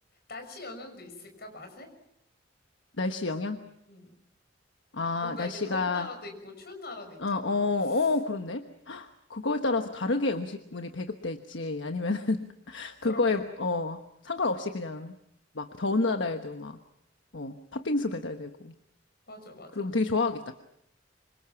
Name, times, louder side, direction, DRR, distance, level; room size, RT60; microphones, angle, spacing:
voice 1, 0.3-1.9 3.9-4.1 5.2-8.1 13.0-13.5 19.3-19.9, left 2 dB, 60° left, 5 dB, 6.4 m, -43 dB
voice 2, 3.0-3.6 4.9-6.1 7.2-15.1 15.5-16.8 17.3-18.7 19.8-20.5, left 3 dB, 80° left, 6 dB, 1.3 m, -29 dB
26.5 x 25.5 x 6.0 m, 0.77 s
head